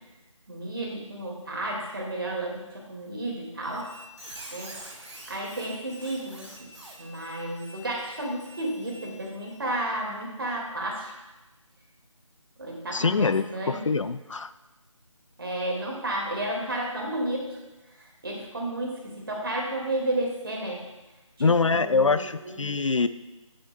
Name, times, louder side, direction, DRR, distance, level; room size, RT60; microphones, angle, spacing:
voice 1, 0.5-3.9 4.5-4.7 5.3-6.7 7.0-11.1 12.6-13.8 15.4-17.6 18.0-20.8 21.4-22.7, right 1 dB, 45° right, -1 dB, 2.1 m, -32 dB
Squeak, 3.6-9.6, equal, 60° right, 1.6 m, -46 dB
voice 2, 12.9-14.5 21.4-23.1, left 4 dB, 65° left, 13 dB, 0.5 m, -24 dB
10.5 x 9.8 x 2.3 m, 1.1 s
figure-of-eight pair, 160°, 17 cm